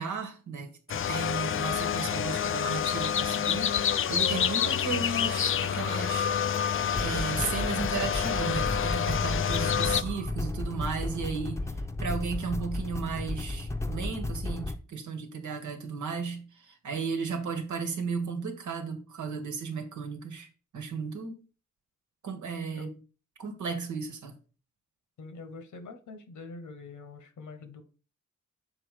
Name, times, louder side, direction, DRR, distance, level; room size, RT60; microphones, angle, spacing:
voice 1, 0.0-6.3 6.9-11.6 12.0-20.5 20.7-21.4 22.2-22.9 23.4-24.3, right 5 dB, 80° right, 1.3 m, -35 dB
sound 1, 0.9-10.0, left 9 dB, 45° left, 0.4 m, -28 dB
sound 2, 5.1-10.3, right 5 dB, 50° right, 0.8 m, -47 dB
sound 3, 6.5-6.6 6.9-14.8, left 2 dB, 10° left, 0.7 m, -34 dB
voice 2, 25.2-27.8, left 3 dB, 80° left, 1.2 m, -44 dB
6.3 x 3.9 x 4.9 m
cardioid pair, 65°, 30 cm